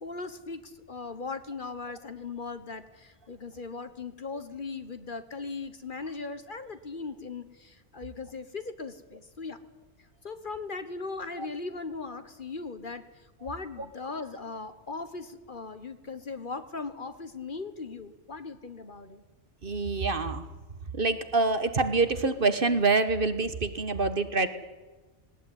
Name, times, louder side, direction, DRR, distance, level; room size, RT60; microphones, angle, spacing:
voice 1, 0.0-9.6 10.2-13.1 13.4-19.2, left 4 dB, 45° left, 11 dB, 1.4 m, -38 dB
voice 2, 19.6-20.5 20.9-24.5, right 3 dB, 50° right, 11 dB, 1.5 m, -26 dB
18.5 x 18.5 x 9.9 m, 1.2 s
omnidirectional pair, 1.2 m